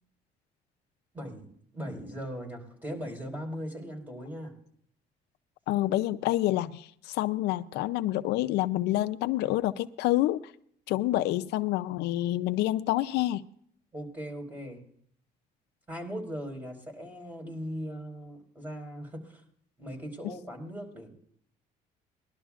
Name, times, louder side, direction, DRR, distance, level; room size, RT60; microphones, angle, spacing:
voice 1, 1.1-1.5 1.7-4.5 13.9-14.8 15.9-19.4 19.8-21.1, equal, 10° right, 2 dB, 4.6 m, -39 dB
voice 2, 5.7-10.4 10.9-13.4, left 15 dB, 85° left, 11 dB, 0.5 m, -28 dB
20.5 x 12.0 x 2.4 m, 0.64 s
cardioid pair, 110°, 17 cm